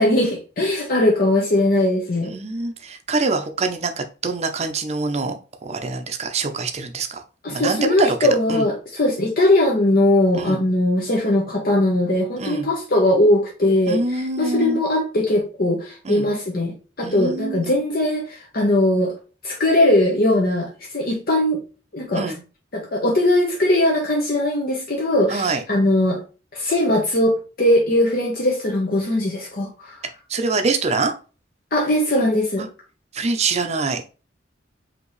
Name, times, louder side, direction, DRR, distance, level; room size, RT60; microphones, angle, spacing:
voice 1, 0.0-2.3 7.4-19.1 19.4-20.7 20.9-21.6 21.9-22.2 22.7-26.2 26.5-30.0 31.7-32.6, left 1 dB, 55° left, -1 dB, 0.9 m, -20 dB
voice 2, 2.3-5.4 5.7-7.2 7.5-8.2 8.5-8.7 10.4-10.6 12.4-12.7 13.9-14.8 16.0-16.3 17.0-17.7 22.1-22.4 25.3-25.6 30.3-31.1 32.6-32.7 33.1-34.0, right 3 dB, 40° right, 7 dB, 0.6 m, -24 dB
5.2 x 2.9 x 3.1 m, 0.34 s
head